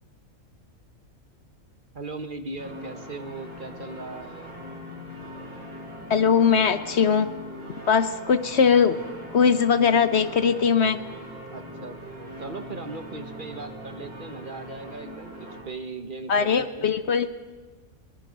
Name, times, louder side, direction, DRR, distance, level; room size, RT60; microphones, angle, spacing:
voice 1, 1.9-4.6 11.5-17.0, right 3 dB, 40° right, 8 dB, 1.3 m, -38 dB
sound 1, 2.6-15.6, equal, 20° right, 7.2 m, -41 dB
voice 2, 6.1-7.3 7.9-9.0 9.3-11.0 16.3-17.3, left 6 dB, 55° left, 12 dB, 1.0 m, -20 dB
22.5 x 22.5 x 5.2 m, 1.3 s
omnidirectional pair, 1.4 m